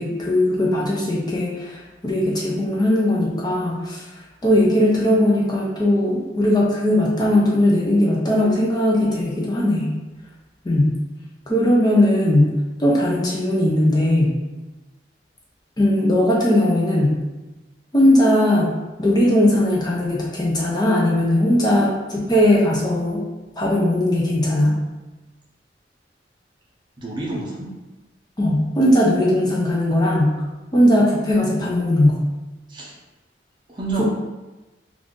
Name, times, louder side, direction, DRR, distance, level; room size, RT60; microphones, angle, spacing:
voice 1, 0.0-4.0 4.4-9.9 10.6-10.9 11.5-14.3 15.8-17.1 17.9-18.7 19.0-23.2 23.6-24.8 28.4-30.4 30.7-32.2 34.0-34.1, left 1 dB, 25° left, -4 dB, 0.4 m, -18 dB
voice 2, 27.0-27.7 32.7-33.0 33.7-34.0, right 3 dB, 25° right, -4 dB, 0.6 m, -29 dB
2.5 x 2.3 x 3.6 m, 1.1 s
head